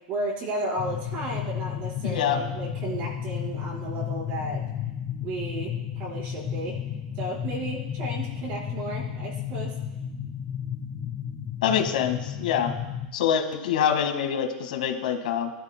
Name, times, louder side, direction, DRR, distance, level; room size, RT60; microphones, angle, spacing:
voice 1, 0.1-4.6 5.2-6.8 7.1-9.7, right 1 dB, 35° right, -4 dB, 4.7 m, -33 dB
sound 1, 0.8-13.1, left 9 dB, 20° left, 1.0 m, -33 dB
voice 2, 2.0-2.4 11.6-12.7 13.1-15.5, left 8 dB, 75° left, 5 dB, 1.7 m, -25 dB
20.0 x 12.0 x 2.2 m, 1.1 s
supercardioid pair, 160°, 5 cm